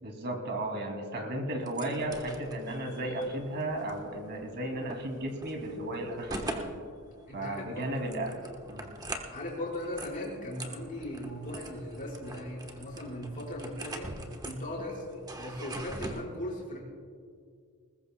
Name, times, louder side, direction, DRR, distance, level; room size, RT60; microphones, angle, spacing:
voice 1, 0.0-6.7 7.3-8.3 8.7-8.9, right 1 dB, 50° right, 3 dB, 2.6 m, -34 dB
sound 1, 1.6-16.2, right 1 dB, 20° right, 1.2 m, -44 dB
voice 2, 7.3-7.9 9.3-14.1 14.4-16.8, left 1 dB, 40° left, -4 dB, 4.6 m, -38 dB
21.0 x 20.0 x 2.3 m, 2.2 s
head